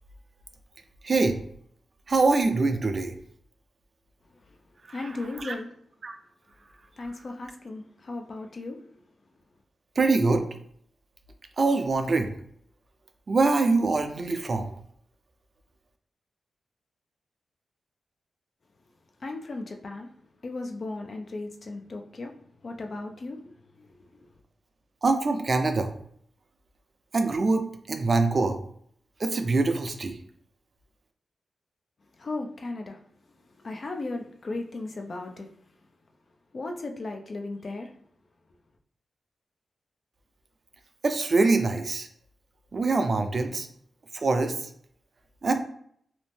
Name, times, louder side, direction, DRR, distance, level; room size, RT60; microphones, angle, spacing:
voice 1, 1.0-1.4 2.1-3.2 4.9-5.1 5.4-5.5 6.0-6.1 10.0-10.4 11.6-12.3 13.3-14.7 25.0-25.9 27.1-28.6 29.2-30.2 41.0-42.1 42.7-43.7 44.1-44.7 45.4-45.5, right 3 dB, 55° right, 6 dB, 0.4 m, -24 dB
voice 2, 4.9-5.7 7.0-8.8 19.2-20.1 20.4-22.3 22.6-23.4 23.8-23.9 32.2-33.0 33.6-35.5 36.5-37.9, left 2 dB, 55° left, 3 dB, 0.4 m, -36 dB
2.6 x 2.1 x 3.3 m, 0.65 s
supercardioid pair, 45°, 0 cm